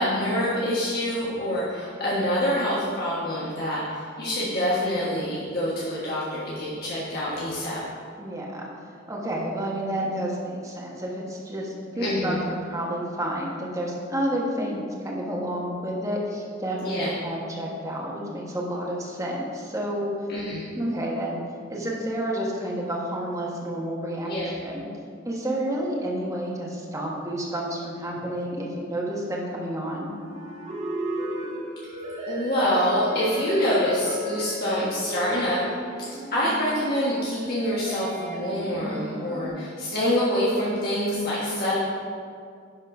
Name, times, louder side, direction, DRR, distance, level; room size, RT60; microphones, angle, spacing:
voice 1, 0.0-7.8 12.0-12.4 16.8-17.1 20.3-20.7 24.2-24.5 32.3-35.6 36.0-41.8, equal, 55° left, -8 dB, 1.6 m, -26 dB
voice 2, 8.2-8.7 9.1-12.4 12.7-20.1 20.7-21.4 21.7-24.9 25.2-30.1, right 1 dB, 15° right, -3 dB, 1.4 m, -30 dB
sound 1, 30.1-39.5, equal, 35° right, 1.3 m, -34 dB
10.5 x 4.3 x 5.3 m, 2.3 s
head